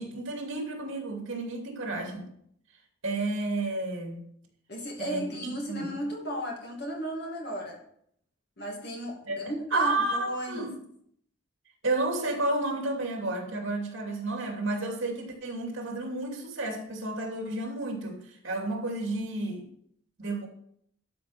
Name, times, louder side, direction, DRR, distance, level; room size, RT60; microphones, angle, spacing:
voice 1, 0.0-2.3 3.0-4.2 5.0-6.0 9.3-9.4 9.7-10.7 11.8-19.7 20.2-20.5, right 2 dB, 65° right, 1 dB, 2.7 m, -31 dB
voice 2, 4.7-7.8 8.6-10.7, equal, 50° left, 0 dB, 2.4 m, -35 dB
12.0 x 5.3 x 5.9 m, 0.67 s
head